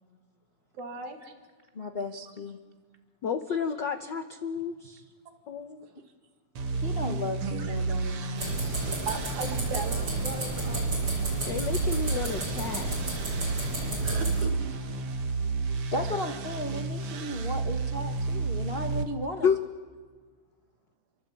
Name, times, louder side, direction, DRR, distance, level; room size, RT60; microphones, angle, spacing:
voice 1, 0.8-1.2 5.8-5.9 7.4-8.0 8.3-8.4 9.1-11.0 14.0-14.7, right 4 dB, 75° right, 5 dB, 3.6 m, -37 dB
voice 2, 1.7-2.6 3.5-3.6 6.7-8.8 15.9-19.5, left 1 dB, 45° left, 3 dB, 0.7 m, -35 dB
voice 3, 3.2-5.0 5.5-5.9 11.4-12.9 19.4-19.6, left 6 dB, 75° left, 8 dB, 1.0 m, -30 dB
sound 1, 6.6-19.0, right 4 dB, 50° right, 2.1 m, -31 dB
sound 2, 8.4-14.4, right 1 dB, 35° right, 7.3 m, -33 dB
29.0 x 23.5 x 8.5 m, 1.5 s
omnidirectional pair, 3.5 m